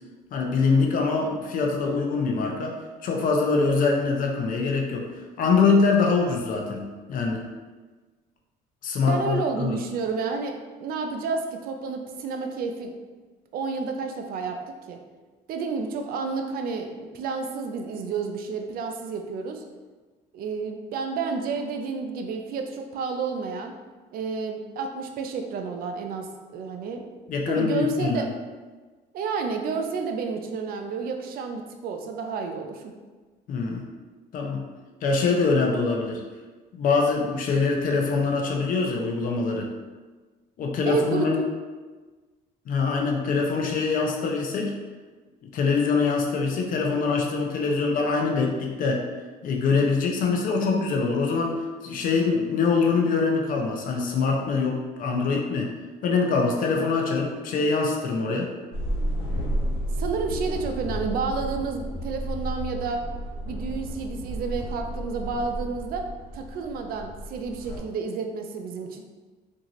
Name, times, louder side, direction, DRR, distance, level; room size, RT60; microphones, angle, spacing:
voice 1, 0.3-5.1 5.4-6.8 7.1-7.4 8.8-9.8 27.3-28.2 33.5-33.8 34.3-34.6 35.0-36.2 36.7-39.7 40.6-41.4 42.7-44.7 45.5-49.0 49.4-51.6 51.8-55.7 56.0-58.5, left 4 dB, 55° left, 1 dB, 0.5 m, -24 dB
voice 2, 9.0-12.9 13.5-14.6 14.9-15.0 15.5-19.6 20.3-23.7 24.1-27.1 27.5-28.3 29.1-32.9 40.9-41.3 60.0-63.0 63.4-66.1 66.3-69.0, right 4 dB, 60° right, 4 dB, 0.4 m, -30 dB
sound 1, 58.7-67.8, equal, 75° left, 1.2 m, -32 dB
2.6 x 2.4 x 2.9 m, 1.3 s
cardioid pair, 110°, 17 cm